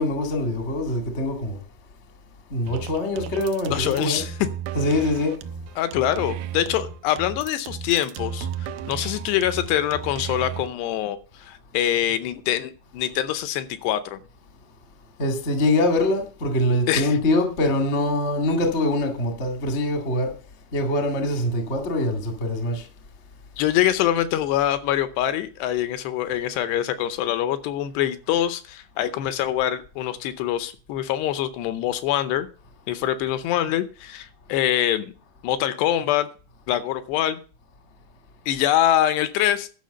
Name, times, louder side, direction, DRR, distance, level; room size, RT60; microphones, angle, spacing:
voice 1, 0.0-1.6 2.5-4.2 4.7-5.3 15.2-20.3 20.7-22.9, left 1 dB, 40° left, 0.9 m, -23 dB
sound 1, 2.7-10.7, right 7 dB, 85° right, 2.2 m, -34 dB
voice 2, 3.7-4.3 5.8-14.2 16.9-17.2 23.6-32.5 32.9-35.1 35.4-36.3 36.7-37.4 38.5-39.7, left 12 dB, 80° left, 2.7 m, -24 dB
11.5 x 6.1 x 6.8 m
omnidirectional pair, 5.1 m